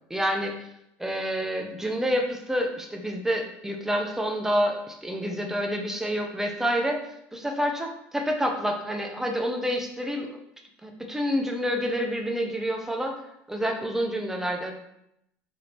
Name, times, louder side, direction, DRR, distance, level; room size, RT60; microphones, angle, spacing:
voice 1, 0.1-0.7 1.0-7.1 7.3-10.3 10.8-13.2 13.5-14.7, equal, 5° right, 3 dB, 0.6 m, -28 dB
4.2 x 2.7 x 3.3 m, 0.80 s
supercardioid pair, 95°, 6 cm